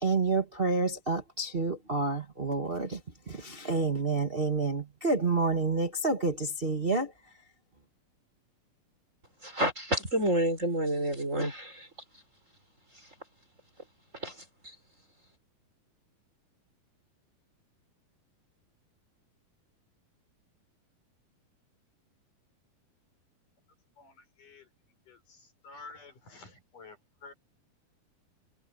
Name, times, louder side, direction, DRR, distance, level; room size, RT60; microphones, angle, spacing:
voice 1, 0.0-3.0 3.3-7.1, right 3 dB, 45° right, 0.7 m, -29 dB
voice 2, 9.4-11.9 14.2-14.3 14.6-14.7, right 1 dB, 20° right, 5.0 m, -29 dB
voice 3, 24.0-24.7 25.1-27.3, left 3 dB, 55° left, 8.1 m, -51 dB
omnidirectional pair, 4.4 m